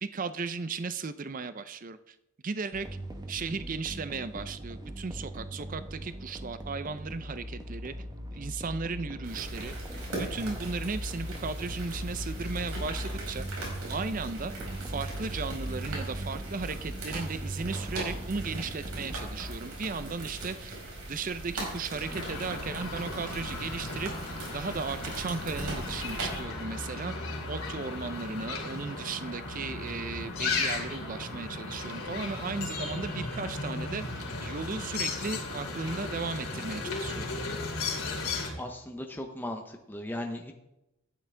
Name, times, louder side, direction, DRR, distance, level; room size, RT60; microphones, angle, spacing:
voice 1, 0.0-2.2 2.4-2.9 3.3-7.9 8.3-9.7 10.1-13.5 13.9-14.5 14.8-20.8 21.1-24.1 24.5-37.3, right 4 dB, 35° right, 13 dB, 0.5 m, -36 dB
sound 1, 2.7-19.5, right 1 dB, 20° right, 1.0 m, -39 dB
sound 2, 9.2-26.4, right 2 dB, 90° right, 4.9 m, -40 dB
sound 3, 22.0-38.5, left 3 dB, 70° left, 3.0 m, -36 dB
voice 2, 38.6-40.5, left 1 dB, 10° left, 3 dB, 0.7 m, -37 dB
13.0 x 10.0 x 3.4 m, 0.89 s
head